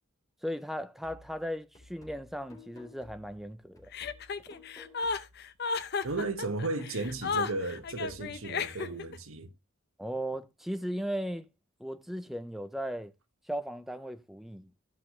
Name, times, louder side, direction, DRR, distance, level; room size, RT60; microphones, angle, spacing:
voice 1, 0.4-3.9 10.0-11.5 11.8-13.1 13.5-14.7, equal, ahead, 0.4 m, -37 dB
sound 1, 1.0-5.5 5.7-9.0, left 2 dB, 15° left, 3.6 m, -55 dB
Chuckle chortle, 3.9-9.2, left 5 dB, 50° left, 0.7 m, -34 dB
voice 2, 6.0-9.5, right 2 dB, 75° right, 1.3 m, -34 dB
14.5 x 5.7 x 3.2 m
head